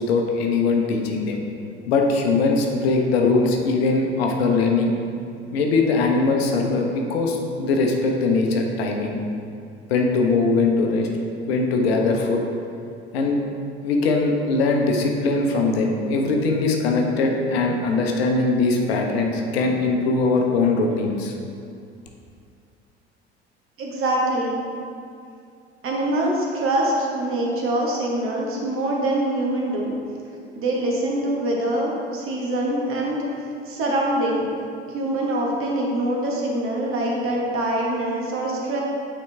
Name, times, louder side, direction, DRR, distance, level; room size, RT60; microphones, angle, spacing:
voice 1, 0.0-1.4 1.9-4.9 5.5-9.2 9.9-11.1 11.5-12.4 13.1-13.4 13.8-21.3, left 3 dB, 65° left, 2 dB, 0.8 m, -21 dB
voice 2, 23.8-24.6 25.8-29.9 30.5-33.3 33.7-34.5 34.9-38.8, right 1 dB, 40° right, -2 dB, 1.4 m, -24 dB
9.1 x 3.9 x 3.5 m, 2.5 s
figure-of-eight pair, 60°, 33 cm